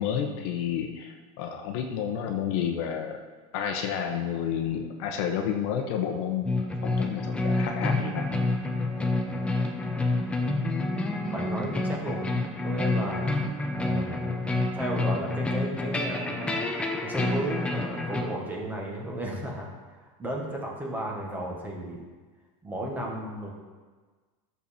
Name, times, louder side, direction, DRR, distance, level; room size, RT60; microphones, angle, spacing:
voice 1, 0.0-3.2 3.5-8.3, left 8 dB, 50° left, 4 dB, 1.0 m, -30 dB
sound 1, 6.4-18.2, left 2 dB, 5° left, 0.6 m, -28 dB
voice 2, 11.3-12.2 12.6-13.3 13.7-14.5 14.7-16.6 17.0-19.7 20.2-22.0 22.6-23.5, right 1 dB, 10° right, -2 dB, 1.5 m, -34 dB
11.5 x 7.0 x 4.3 m, 1.4 s
supercardioid pair, 170°, 18 cm